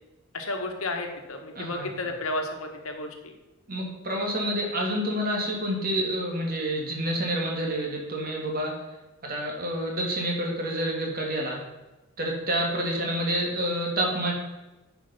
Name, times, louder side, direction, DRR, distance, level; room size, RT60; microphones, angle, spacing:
voice 1, 0.3-3.3 12.7-13.1, left 2 dB, 80° left, 4 dB, 1.4 m, -33 dB
voice 2, 1.6-1.9 3.7-8.8 9.2-11.6 12.2-14.3, right 1 dB, 45° right, 0 dB, 2.2 m, -28 dB
10.5 x 5.2 x 5.5 m, 1.1 s
head